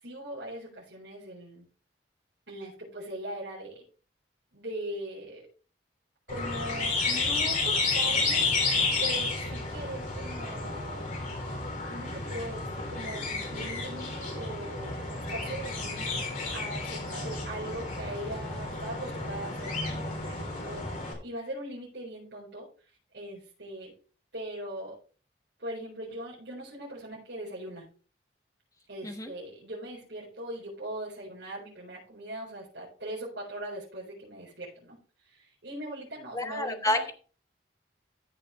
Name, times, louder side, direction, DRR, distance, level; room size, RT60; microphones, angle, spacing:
voice 1, 0.0-1.7 2.5-3.8 4.5-5.5 6.3-8.5 9.0-11.1 11.9-16.1 16.5-22.7 23.1-23.9 24.3-25.0 25.6-27.9 28.9-37.1, right 1 dB, 70° right, -5 dB, 4.4 m, -40 dB
sound 1, 6.3-21.1, left 3 dB, 45° left, 3.6 m, -31 dB
voice 2, 36.3-37.1, left 1 dB, 20° left, 6 dB, 1.2 m, -29 dB
14.5 x 6.6 x 3.3 m, 0.39 s
head